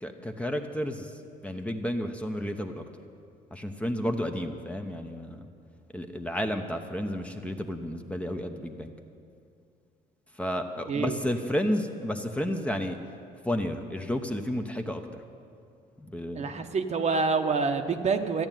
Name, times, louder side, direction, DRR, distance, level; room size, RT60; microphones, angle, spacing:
voice 1, 0.0-2.8 3.5-5.5 5.9-8.9 10.3-13.0 13.4-15.2 16.0-16.7, equal, 5° left, 5 dB, 0.9 m, -32 dB
voice 2, 16.3-18.5, right 4 dB, 40° right, 6 dB, 1.0 m, -27 dB
14.0 x 9.7 x 9.1 m, 2.4 s
cardioid pair, 110°, 17 cm